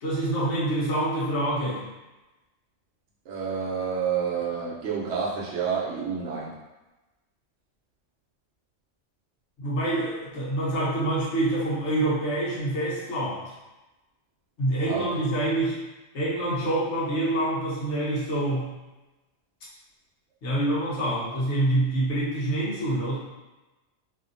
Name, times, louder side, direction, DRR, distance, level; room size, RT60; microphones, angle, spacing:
voice 1, 0.0-1.8 9.6-13.5 14.6-15.8 16.1-18.7 20.4-23.2, right 1 dB, 65° left, -7 dB, 1.1 m, -26 dB
voice 2, 3.3-6.5 14.9-15.1, right 6 dB, 70° right, -4 dB, 0.9 m, -29 dB
2.8 x 2.6 x 2.5 m, 1.1 s
omnidirectional pair, 1.3 m